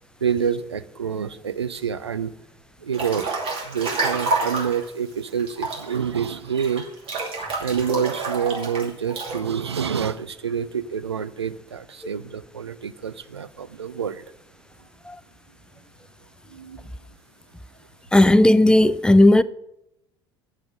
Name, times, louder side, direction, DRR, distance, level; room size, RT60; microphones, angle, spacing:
voice 1, 0.2-2.3 2.8-3.3 3.6-6.8 7.3-14.2 16.5-16.8, right 7 dB, 85° right, 0.4 m, -27 dB
Breathing / Bathtub (filling or washing) / Splash splatter, 2.9-4.8 5.4-9.4, right 3 dB, 45° right, 2.6 m, -28 dB
voice 2, 18.1-19.4, left 1 dB, 5° left, 0.4 m, -14 dB
9.0 x 7.7 x 5.2 m
figure-of-eight pair, 65°, 14 cm